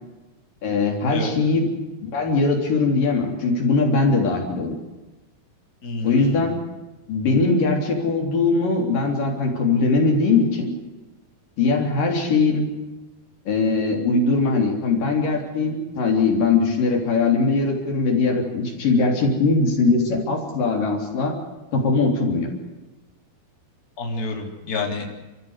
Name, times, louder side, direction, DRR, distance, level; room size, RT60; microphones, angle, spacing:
voice 1, 0.6-1.7 2.0-4.7 6.0-6.6 7.1-10.7 11.6-12.7 13.5-21.4 21.7-22.5, left 3 dB, 55° left, 2 dB, 4.8 m, -21 dB
voice 2, 5.8-6.5 24.0-25.1, left 3 dB, 20° left, 1 dB, 3.8 m, -29 dB
30.0 x 15.0 x 8.1 m, 1.1 s
omnidirectional pair, 4.7 m